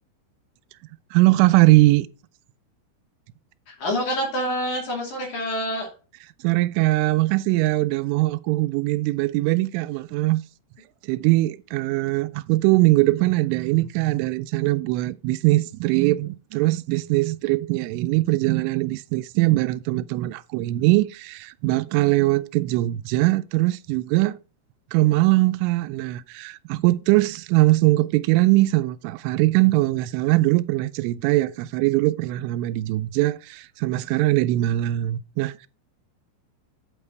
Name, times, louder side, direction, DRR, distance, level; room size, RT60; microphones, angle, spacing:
voice 1, 1.1-2.1 6.4-10.4 11.0-24.4 24.9-35.7, right 19 dB, 85° right, 3.0 m, -21 dB
voice 2, 3.7-5.9, equal, 45° left, 3.4 m, -27 dB
8.5 x 5.4 x 4.6 m
omnidirectional pair, 5.6 m